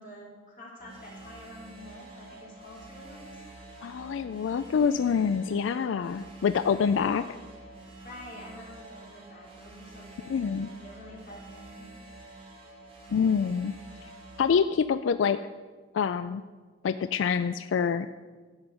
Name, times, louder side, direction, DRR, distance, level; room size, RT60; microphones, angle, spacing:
voice 1, 0.0-3.5 8.0-11.9, left 1 dB, 45° left, -4 dB, 3.7 m, -48 dB
sound 1, 0.8-14.5, right 2 dB, 30° right, 2.6 m, -48 dB
voice 2, 3.8-7.2 10.3-10.7 13.1-13.7 14.4-15.4 15.9-16.4 16.8-18.1, left 6 dB, 90° left, 12 dB, 0.3 m, -26 dB
12.0 x 5.5 x 8.0 m, 1.5 s
head